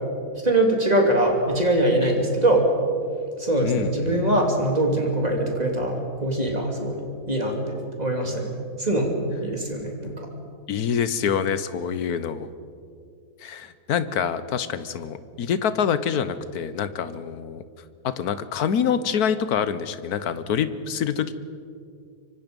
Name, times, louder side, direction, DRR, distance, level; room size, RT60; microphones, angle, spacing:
voice 1, 0.4-2.7 3.4-7.0 7.3-8.5 8.8-9.1 9.4-10.3, right 1 dB, 25° right, 1 dB, 3.1 m, -22 dB
voice 2, 3.6-4.2 10.7-12.5 13.4-17.6 18.0-21.3, left 7 dB, 70° left, 13 dB, 1.4 m, -26 dB
25.0 x 24.5 x 5.3 m, 2.4 s
omnidirectional pair, 1.7 m